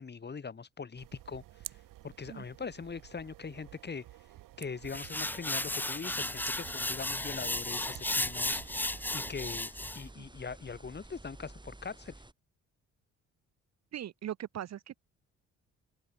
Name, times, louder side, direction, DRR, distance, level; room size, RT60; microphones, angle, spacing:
voice 1, 0.0-1.4 2.0-4.0 4.6-8.6 9.1-9.7 9.9-12.1, left 5 dB, 30° left, 1.6 m, -41 dB
sound 1, 1.0-9.5, right 16 dB, 80° right, 4.8 m, -52 dB
sound 2, 4.9-10.0, left 1 dB, 5° left, 0.6 m, -34 dB
sound 3, 6.1-12.3, right 2 dB, 15° right, 7.8 m, -52 dB
voice 2, 13.9-15.0, right 11 dB, 55° right, 0.9 m, -40 dB
open air
supercardioid pair, 60°, 32 cm